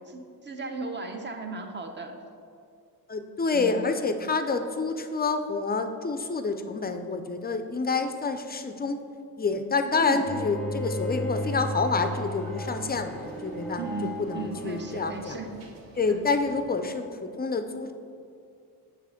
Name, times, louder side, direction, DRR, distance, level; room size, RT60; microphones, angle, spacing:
voice 1, 0.0-2.2 3.5-3.9 9.9-10.3 13.8-15.6 16.1-16.2, right 3 dB, 25° right, 4 dB, 0.7 m, -36 dB
voice 2, 3.1-9.0 9.4-15.4 16.0-17.9, left 4 dB, 25° left, 7 dB, 0.4 m, -28 dB
Bowed string instrument, 10.2-15.3, equal, ahead, 0.8 m, -34 dB
sound 1, 11.3-16.6, right 3 dB, 60° right, 1.0 m, -49 dB
7.4 x 3.4 x 5.7 m, 2.4 s
cardioid pair, 90°, 40 cm